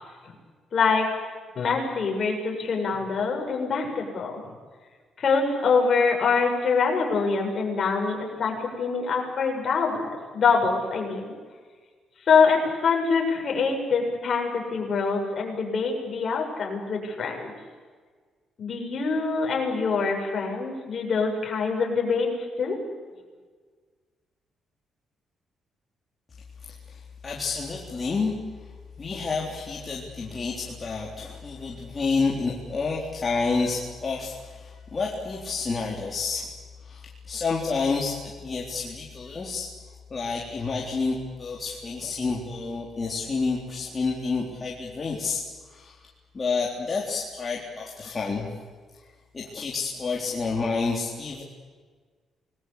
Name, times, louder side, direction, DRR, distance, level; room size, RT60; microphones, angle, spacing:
voice 1, 0.7-1.1 1.6-4.4 5.2-11.3 12.3-17.5 18.6-22.3 22.6-22.8, left 5 dB, 45° left, 1 dB, 7.3 m, -24 dB
voice 2, 26.6-36.5 36.8-39.7 40.1-46.0 46.3-48.6 49.3-51.4, left 4 dB, 30° left, -3 dB, 3.9 m, -29 dB
28.0 x 21.0 x 8.5 m, 1.5 s
cardioid pair, 130°, 0 cm